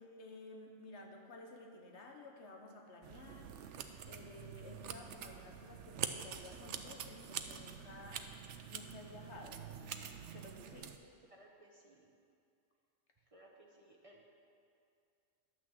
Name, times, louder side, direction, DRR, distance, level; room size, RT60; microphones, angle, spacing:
voice 1, 0.0-8.3 8.7-9.6 10.3-10.9, left 2 dB, 70° left, 2 dB, 1.4 m, -54 dB
sound 1, 3.0-11.0, right 8 dB, 80° right, 0.9 m, -46 dB
voice 2, 11.3-12.1 13.3-14.2, right 1 dB, 30° right, -1 dB, 1.0 m, -61 dB
10.5 x 6.2 x 7.4 m, 2.4 s
omnidirectional pair, 1.2 m